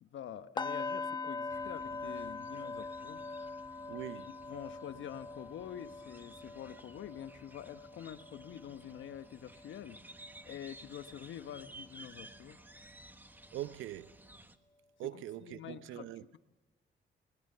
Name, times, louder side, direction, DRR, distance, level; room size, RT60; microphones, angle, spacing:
voice 1, 0.0-3.2 4.2-10.0 10.4-12.6 15.1-16.4, left 10 dB, 70° left, 1.1 m, -47 dB
sound 1, 0.6-10.5 10.8-11.1 11.5-11.7, left 3 dB, 20° left, 0.9 m, -43 dB
sound 2, 1.5-14.6, right 2 dB, 10° right, 1.3 m, -56 dB
voice 2, 3.9-4.3 13.5-14.2 15.0-16.2, right 13 dB, 85° right, 0.7 m, -42 dB
20.5 x 19.0 x 6.8 m
cardioid pair, 90°, 20 cm